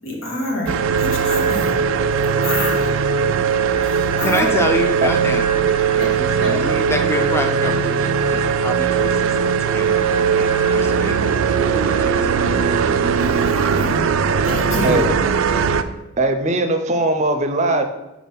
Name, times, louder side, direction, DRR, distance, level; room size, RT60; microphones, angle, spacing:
voice 1, 0.0-1.8 2.4-3.0 3.8-4.5 5.9-6.7 13.2-14.1 14.4-15.1, left 1 dB, 80° left, 0 dB, 1.5 m, -27 dB
sound 1, 0.7-15.8, right 6 dB, 90° right, 0.4 m, -19 dB
voice 2, 4.2-5.5 6.2-11.3 11.7-12.7, left 1 dB, 15° left, 5 dB, 0.5 m, -27 dB
voice 3, 16.2-17.8, right 2 dB, 35° right, 7 dB, 0.5 m, -19 dB
4.7 x 3.9 x 5.5 m, 0.95 s
head